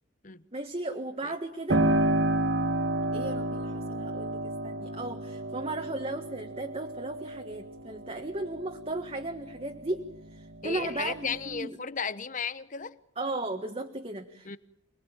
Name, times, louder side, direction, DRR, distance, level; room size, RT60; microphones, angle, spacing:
voice 1, 0.5-1.8 3.1-11.8 13.2-14.6, right 2 dB, 30° right, 1.6 m, -36 dB
Piano, 1.7-10.1 10.5-11.6, right 1 dB, 60° right, 1.9 m, -31 dB
voice 2, 10.6-13.0 14.4-14.6, left 6 dB, 40° left, 1.0 m, -35 dB
28.0 x 21.0 x 9.1 m
head